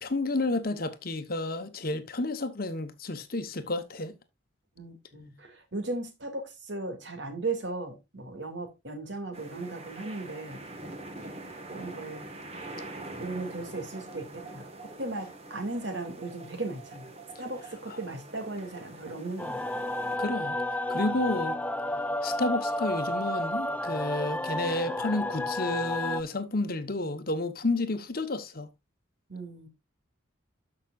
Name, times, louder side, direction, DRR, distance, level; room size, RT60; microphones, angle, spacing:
voice 1, 0.0-4.1 20.2-20.6 20.9-21.6 22.2-28.7, left 2 dB, 50° left, 1.1 m, -31 dB
voice 2, 4.8-10.6 11.2-12.3 13.2-17.1 17.4-19.6 29.3-29.7, right 2 dB, 60° right, 2.4 m, -37 dB
sound 1, 9.3-20.2, right 2 dB, 30° right, 1.5 m, -44 dB
sound 2, 19.4-26.2, left 1 dB, 5° left, 0.3 m, -31 dB
12.5 x 6.0 x 2.5 m
head